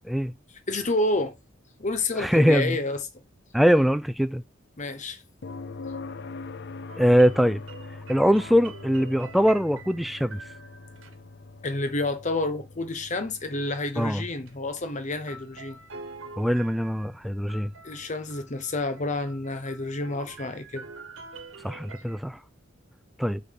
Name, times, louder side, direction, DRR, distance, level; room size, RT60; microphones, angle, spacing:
voice 1, 0.7-1.4 1.8-3.1 4.8-5.2 11.6-15.8 17.8-20.9, left 2 dB, 40° left, 0.9 m, -29 dB
voice 2, 2.2-2.8 3.5-4.4 7.0-7.6 8.1-10.4 14.0-14.2 16.4-17.7 21.6-22.4 23.2-23.4, equal, ahead, 0.3 m, -22 dB
sound 1, 5.4-19.3 21.5-21.6, left 3 dB, 55° left, 0.5 m, -44 dB
sound 2, 6.9-11.2 14.5-14.6 15.3-22.2, right 4 dB, 80° right, 1.3 m, -46 dB
6.8 x 3.7 x 3.7 m
head